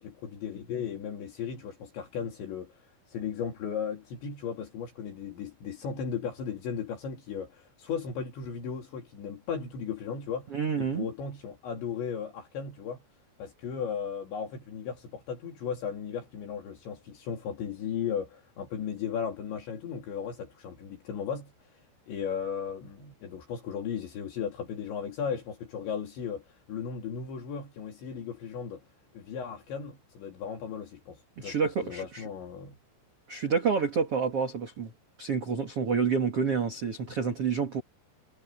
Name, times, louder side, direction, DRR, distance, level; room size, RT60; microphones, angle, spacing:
voice 1, 0.0-2.8 3.1-10.5 10.8-13.0 13.4-21.5 22.1-28.8 29.1-32.7, left 7 dB, 70° left, 5.4 m, -36 dB
voice 2, 10.5-11.1 31.4-32.2 33.3-34.9 35.2-37.8, right 5 dB, 45° right, 2.2 m, -28 dB
omnidirectional pair, 5.5 m